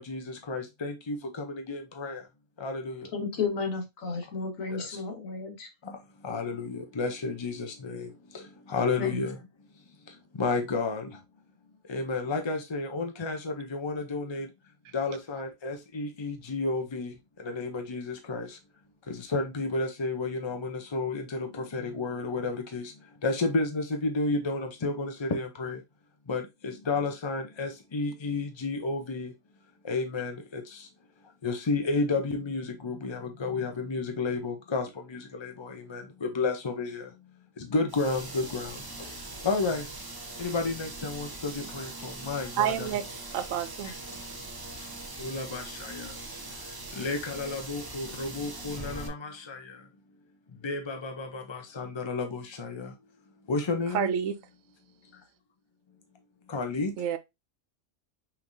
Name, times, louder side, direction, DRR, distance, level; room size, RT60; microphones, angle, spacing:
voice 1, 0.0-2.2 2.6-3.1 4.7-5.0 5.8-6.0 6.2-9.4 10.4-11.2 11.9-14.5 14.9-17.1 17.4-18.6 19.1-22.9 23.2-25.8 26.3-29.3 29.8-30.9 31.4-37.1 37.6-39.1 39.4-39.9 40.4-42.9 43.8-43.9 45.2-46.1 46.9-49.8 50.6-52.9 53.5-54.1 56.5-56.9, left 3 dB, 45° left, 0.3 m, -32 dB
voice 2, 3.1-5.7 9.0-9.2, left 4 dB, 70° left, 1.6 m, -32 dB
sound 1, 37.9-49.1, right 2 dB, 25° right, 0.5 m, -41 dB
voice 3, 42.6-43.1 43.3-43.9 53.9-54.4 57.0-57.2, right 8 dB, 75° right, 0.9 m, -28 dB
5.7 x 3.3 x 2.6 m
omnidirectional pair, 1.5 m